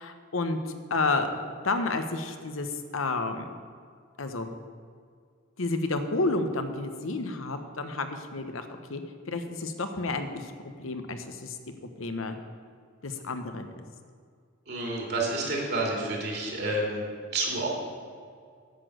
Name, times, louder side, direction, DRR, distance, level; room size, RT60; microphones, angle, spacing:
voice 1, 0.0-1.3 1.6-3.5 4.2-4.5 5.6-9.0 9.3-10.5 10.8-11.6 12.0-12.4 13.0-13.7, left 3 dB, 80° left, 8 dB, 0.9 m, -30 dB
voice 2, 14.7-17.0 17.3-17.7, right 2 dB, 55° right, -1 dB, 2.7 m, -29 dB
9.8 x 6.2 x 7.8 m, 2.1 s
head